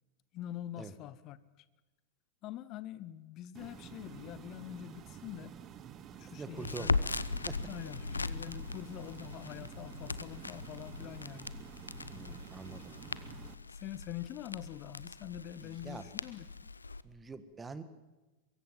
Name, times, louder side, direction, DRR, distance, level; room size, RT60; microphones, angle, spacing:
voice 1, 0.3-1.4 2.4-5.6 6.2-7.0 7.7-11.5 13.7-16.7, left 12 dB, 35° left, 1.2 m, -45 dB
sound 1, 3.5-13.5, right 8 dB, 30° right, 1.5 m, -50 dB
voice 2, 6.4-6.9 7.5-7.6 12.1-12.9 15.6-16.1 17.0-17.8, right 4 dB, 15° right, 1.8 m, -45 dB
Crackle, 6.6-17.0, left 4 dB, 80° left, 0.8 m, -39 dB
23.5 x 23.0 x 7.6 m
figure-of-eight pair, 90°, 0 cm